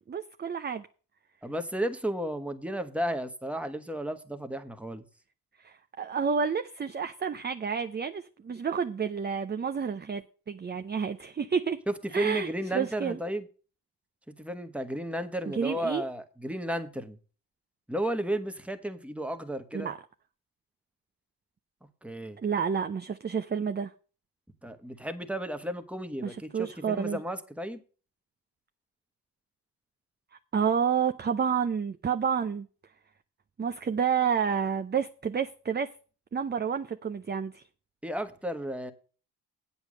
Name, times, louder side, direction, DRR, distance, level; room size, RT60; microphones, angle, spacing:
voice 1, 0.1-0.9 5.6-11.8 12.1-13.2 15.5-16.0 19.7-20.0 22.4-23.9 26.2-27.2 30.5-32.7 33.6-35.9 36.3-37.6, right 6 dB, 25° right, 0.6 m, -30 dB
voice 2, 1.4-5.0 11.9-13.5 14.3-17.2 17.9-19.9 22.0-22.4 24.6-27.8 38.0-38.9, right 1 dB, 5° right, 1.3 m, -33 dB
8.1 x 7.1 x 6.4 m
supercardioid pair, 60°, 42 cm